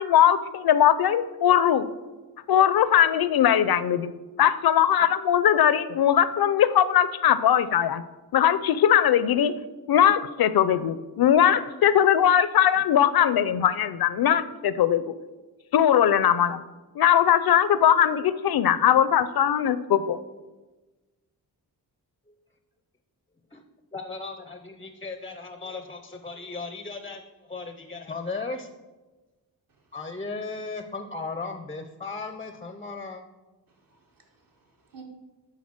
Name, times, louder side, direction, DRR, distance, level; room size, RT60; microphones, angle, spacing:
voice 1, 0.0-1.8 2.5-4.1 4.4-8.0 8.3-9.5 9.9-15.1 15.7-16.6 17.0-20.2, left 10 dB, 65° left, 14 dB, 0.5 m, -20 dB
voice 2, 23.9-28.7 29.9-33.2, left 3 dB, 15° left, 6 dB, 0.5 m, -36 dB
voice 3, 33.7-35.0, right 5 dB, 55° right, 1 dB, 1.8 m, -53 dB
10.5 x 3.9 x 7.4 m, 1.2 s
wide cardioid pair, 140°, 40 cm